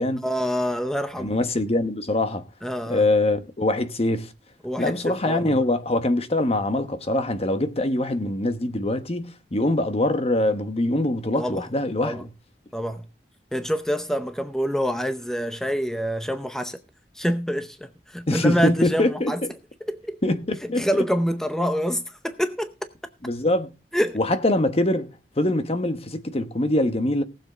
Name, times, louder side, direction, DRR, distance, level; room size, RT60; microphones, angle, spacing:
voice 1, 0.2-1.4 2.6-3.0 4.6-5.6 11.4-11.6 12.0-12.2 12.7-13.0 13.5-16.8 17.1-19.4 19.9-20.2 20.8-22.7 23.9-24.2, equal, 5° left, 0.6 m, -26 dB
voice 2, 1.2-2.4 2.9-4.3 4.8-12.2 18.3-19.3 20.2-21.0 23.2-23.7 24.1-27.2, left 1 dB, 35° left, 1.0 m, -23 dB
18.5 x 7.2 x 3.9 m
head